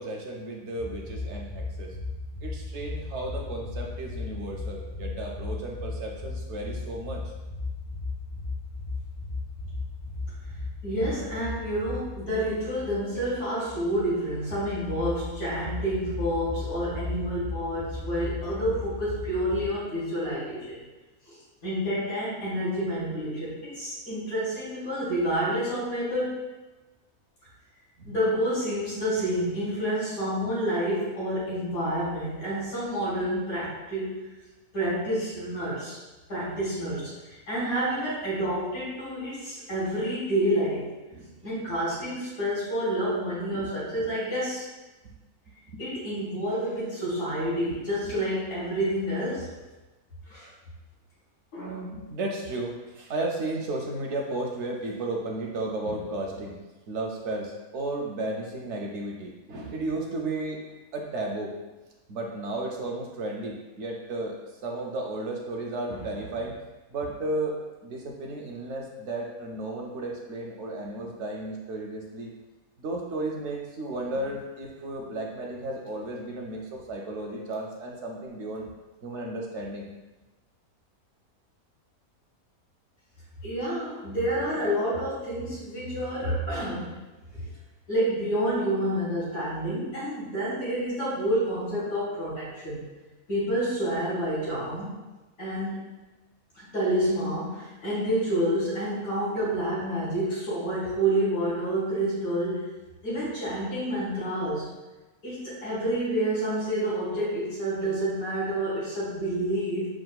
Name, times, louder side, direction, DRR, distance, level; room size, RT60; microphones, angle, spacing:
voice 1, 0.0-2.0 2.4-7.2 28.0-28.2 41.1-41.3 43.5-44.1 45.7-45.8 48.0-48.1 51.6-56.6 56.9-60.6 60.9-61.5 62.1-64.4 64.6-66.6 66.9-67.6 67.8-72.3 72.8-78.7 79.0-79.9, right 2 dB, 65° right, 0 dB, 0.7 m, -34 dB
sound 1, 0.8-19.7, left 3 dB, 30° left, 0.5 m, -36 dB
voice 2, 10.8-20.8 21.3-21.4 21.6-26.3 28.0-34.1 34.7-36.0 36.3-40.9 41.4-44.6 45.8-49.5 50.3-50.5 51.5-51.8 83.4-87.0 87.3-87.5 87.9-92.8 93.3-94.9 95.4-95.8 96.5-102.7 103.0-104.7 105.2-109.9, right 1 dB, 80° left, -10 dB, 2.2 m, -29 dB
7.1 x 2.4 x 2.3 m, 1.1 s
omnidirectional pair, 1.5 m